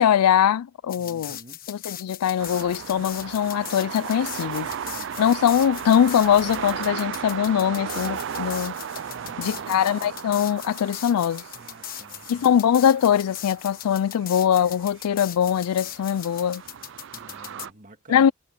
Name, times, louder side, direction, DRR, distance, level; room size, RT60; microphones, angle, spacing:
voice 1, 0.0-1.4 1.7-4.7 5.2-8.8 9.4-11.4 12.3-16.6 18.1-18.3, left 9 dB, 85° left, 0.3 m, -22 dB
sound 1, 0.9-17.7, left 12 dB, 40° left, 1.2 m, -39 dB
voice 2, 1.0-1.6 4.7-5.4 9.1-9.8 11.5-12.7 17.1-18.3, right 1 dB, 35° right, 2.6 m, -49 dB
sound 2, 2.4-17.7, right 8 dB, 55° right, 0.4 m, -36 dB
head